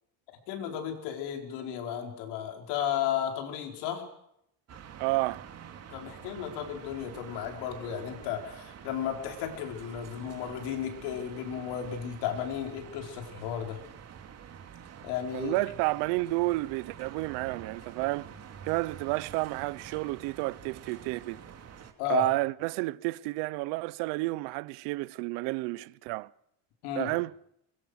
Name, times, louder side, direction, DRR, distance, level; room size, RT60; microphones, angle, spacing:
voice 1, 0.5-4.1 5.9-13.8 15.0-15.5 22.0-22.3 26.8-27.1, left 9 dB, 80° left, 4.8 m, -34 dB
sound 1, 4.7-21.9, right 8 dB, 40° right, 2.6 m, -47 dB
voice 2, 5.0-5.4 15.3-18.3 18.6-21.4 22.1-26.3 27.0-27.3, right 22 dB, 85° right, 0.8 m, -30 dB
23.5 x 22.5 x 6.5 m
cardioid pair, 150°, 40 cm